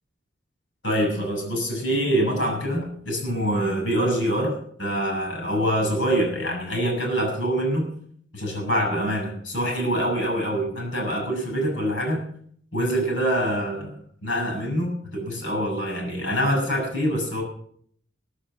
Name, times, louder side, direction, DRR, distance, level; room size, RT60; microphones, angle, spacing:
voice 1, 0.8-7.9 8.3-12.2 12.7-13.9 14.2-17.4, equal, 80° left, 1 dB, 6.6 m, -25 dB
17.5 x 8.0 x 7.6 m, 0.63 s
head